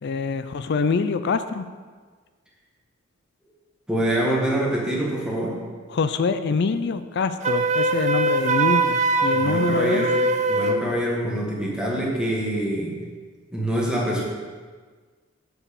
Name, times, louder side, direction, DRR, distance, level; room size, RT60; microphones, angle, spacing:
voice 1, 0.0-1.7 5.9-10.0, left 4 dB, 60° left, 11 dB, 0.4 m, -25 dB
voice 2, 3.9-5.6 9.3-10.2 10.5-13.0 13.5-14.2, right 1 dB, 5° right, -4 dB, 1.5 m, -25 dB
Wind instrument woodwind instrument, 7.4-10.8, right 2 dB, 35° right, 0.5 m, -22 dB
7.0 x 4.7 x 7.0 m, 1.5 s
head